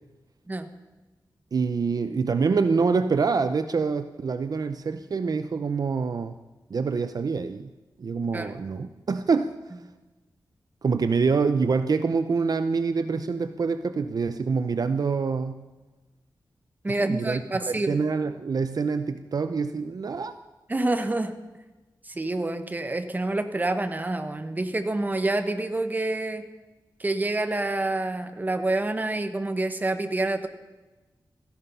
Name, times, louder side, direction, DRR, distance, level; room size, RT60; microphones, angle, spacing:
voice 1, 1.5-6.4 6.7-7.7 8.0-9.5 10.8-15.7 16.9-20.4, right 5 dB, 60° right, 10 dB, 0.6 m, -26 dB
voice 2, 16.8-17.9 20.7-21.3 22.0-26.4 27.0-30.5, right 2 dB, 25° right, 8 dB, 1.2 m, -27 dB
16.5 x 14.5 x 5.5 m, 1.1 s
wide cardioid pair, 135°, 7 cm